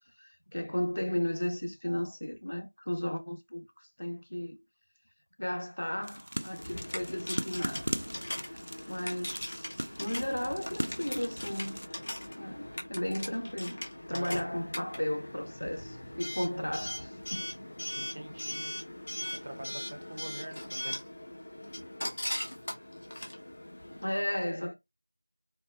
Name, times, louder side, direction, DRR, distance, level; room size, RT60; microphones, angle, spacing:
voice 1, 0.2-4.6 5.4-8.0 8.3-8.4 8.9-11.8 12.4-13.8 14.1-17.4 24.0-24.7, left 1 dB, 55° left, 1.2 m, -35 dB
sound 1, 6.0-11.9, equal, 70° right, 0.4 m, -39 dB
Coin (dropping) / Alarm, 6.6-24.1, left 1 dB, 35° left, 0.9 m, -40 dB
voice 2, 14.1-14.5 18.0-18.7 19.4-21.0, right 1 dB, 30° right, 0.6 m, -44 dB
4.4 x 2.9 x 2.3 m
figure-of-eight pair, 175°, 0 cm